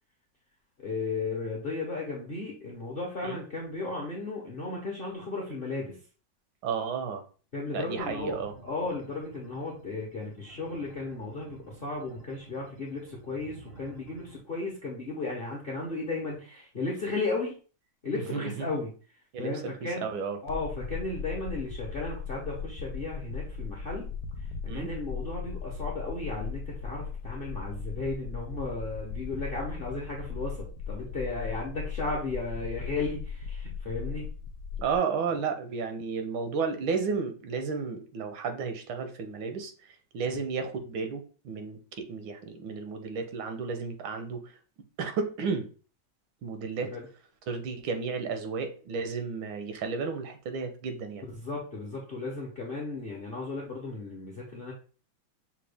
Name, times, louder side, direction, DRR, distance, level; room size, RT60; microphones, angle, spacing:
voice 1, 0.8-6.0 7.5-8.4 8.6-17.5 18.0-18.9 19.4-20.0 20.4-24.1 24.4-24.5 24.7-34.3 35.3-35.4 40.3-40.4 46.9-47.0 51.3-54.7, left 3 dB, 55° left, -2 dB, 0.6 m, -35 dB
voice 2, 6.6-7.2 7.7-8.5 18.1-18.7 19.3-19.7 20.0-20.4 24.7-24.9 34.8-44.5 45.0-45.7 46.4-46.9 47.5-51.3, right 5 dB, 80° right, 7 dB, 1.5 m, -33 dB
sound 1, 8.0-14.4, right 2 dB, 55° right, 0.7 m, -52 dB
sound 2, 20.5-35.0, left 5 dB, 90° left, 1.4 m, -38 dB
5.8 x 2.2 x 3.3 m, 0.38 s
omnidirectional pair, 2.1 m